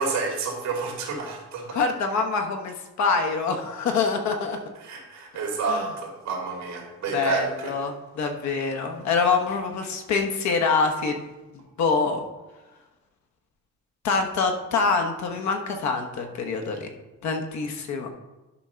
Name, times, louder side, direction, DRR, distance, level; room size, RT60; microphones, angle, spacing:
voice 1, 0.0-1.8 4.8-7.7, right 4 dB, 65° right, -1 dB, 2.8 m, -29 dB
voice 2, 1.7-4.6 5.7-5.9 7.1-11.2 11.8-12.2 14.0-16.9 17.2-18.1, left 4 dB, 70° left, 4 dB, 1.2 m, -25 dB
11.5 x 3.8 x 5.7 m, 1.1 s
cardioid pair, 180°, 29 cm